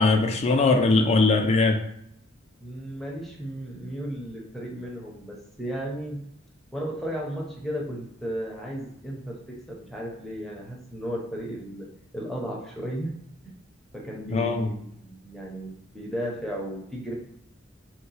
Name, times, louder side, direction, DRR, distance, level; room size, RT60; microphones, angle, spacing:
voice 1, 0.0-1.8 14.3-14.7, left 3 dB, 35° left, 4 dB, 0.4 m, -20 dB
voice 2, 2.6-6.3 6.7-13.5 13.9-17.1, equal, ahead, -3 dB, 0.7 m, -35 dB
2.7 x 2.2 x 4.0 m, 0.71 s
head